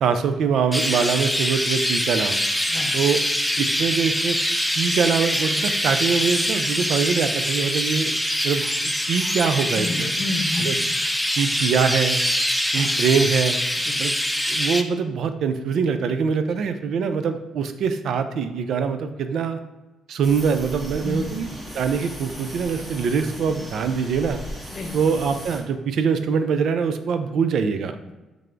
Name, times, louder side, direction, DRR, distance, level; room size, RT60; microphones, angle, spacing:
voice 1, 0.0-2.4 2.9-3.2 3.6-4.4 4.8-8.2 8.4-10.1 10.6-10.7 11.4-12.2 12.7-13.6 14.0-14.1 14.5-19.6 20.1-21.5 21.7-24.4 24.9-28.0, right 6 dB, 70° right, 9 dB, 0.4 m, -23 dB
Chirp tweet, 0.7-14.8, equal, ahead, 0.3 m, -24 dB
voice 2, 2.7-3.0 9.7-10.8 12.7-12.9 13.8-14.0 16.5-16.6 21.0-21.4 24.7-24.9, left 2 dB, 40° left, 3 dB, 0.7 m, -30 dB
sound 1, 20.2-25.6, equal, 25° right, 1.2 m, -37 dB
3.3 x 3.3 x 3.8 m, 1.1 s
cardioid pair, 90°, 0 cm